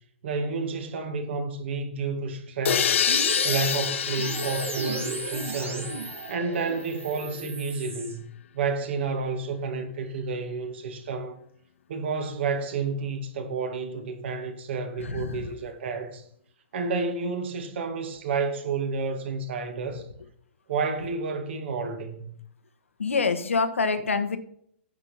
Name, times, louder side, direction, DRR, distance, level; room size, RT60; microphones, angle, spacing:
voice 1, 0.2-3.1 3.4-6.0 6.3-8.2 8.5-11.4 11.9-16.2 16.7-20.1 20.7-22.3, right 4 dB, 60° right, 2.3 m, -30 dB
sound 1, 2.6-6.4, left 9 dB, 75° left, 0.4 m, -28 dB
sound 2, 3.1-8.2, right 4 dB, 90° right, 2.6 m, -34 dB
voice 2, 15.0-15.5 23.0-24.4, left 4 dB, 90° left, 1.3 m, -26 dB
9.9 x 6.7 x 5.7 m
hypercardioid pair, 130°, 7 cm